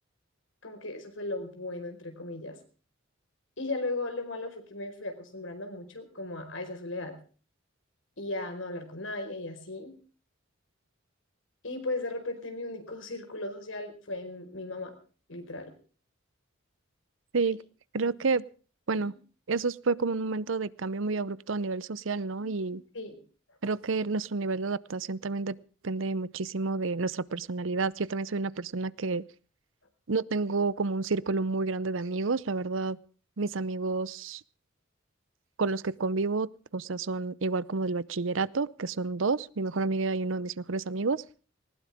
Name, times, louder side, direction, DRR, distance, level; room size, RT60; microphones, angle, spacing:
voice 1, 0.6-2.6 3.6-7.1 8.2-9.9 11.6-14.9 15.3-15.7 18.0-18.1 18.9-19.1 22.9-23.2, left 2 dB, 85° left, 6 dB, 4.8 m, -36 dB
voice 2, 17.9-18.4 18.9-19.1 19.5-22.8 23.6-25.5 25.8-29.2 30.1-33.0 33.4-34.4 35.6-41.2, right 3 dB, 85° right, 19 dB, 0.7 m, -30 dB
19.5 x 19.0 x 3.6 m, 0.39 s
head